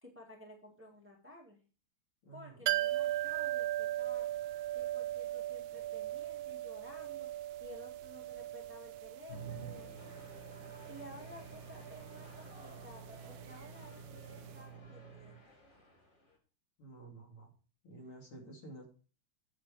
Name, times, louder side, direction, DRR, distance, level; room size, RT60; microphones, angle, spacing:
voice 1, 0.0-1.6 2.3-4.3 4.7-7.3 7.6-10.1 10.8-15.4, left 1 dB, 5° right, 0 dB, 1.8 m, -54 dB
voice 2, 2.2-2.7 16.8-17.5 17.8-18.9, right 2 dB, 70° left, 0 dB, 3.5 m, -51 dB
sound 1, 2.7-14.3 14.5-14.6, right 14 dB, 75° right, 1.3 m, -39 dB
sound 2, 9.3-16.3, right 4 dB, 25° left, 1.8 m, -50 dB
8.9 x 7.3 x 4.8 m, 0.38 s
omnidirectional pair, 2.4 m